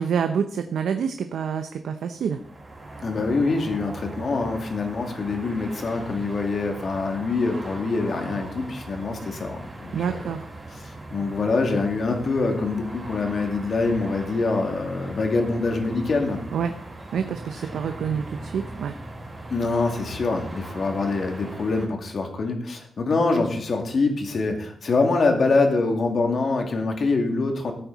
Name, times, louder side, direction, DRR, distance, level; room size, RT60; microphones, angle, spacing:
voice 1, 0.0-2.4 9.9-10.4 16.5-16.7 17.1-18.9, right 7 dB, 90° right, 7 dB, 0.7 m, -27 dB
sound 1, 2.1-21.9, right 2 dB, 25° right, 4.5 m, -39 dB
voice 2, 3.0-10.2 10.7-16.4 19.5-27.7, left 3 dB, 55° left, 3 dB, 2.4 m, -25 dB
13.5 x 9.3 x 4.1 m, 0.63 s
cardioid pair, 105°, 0 cm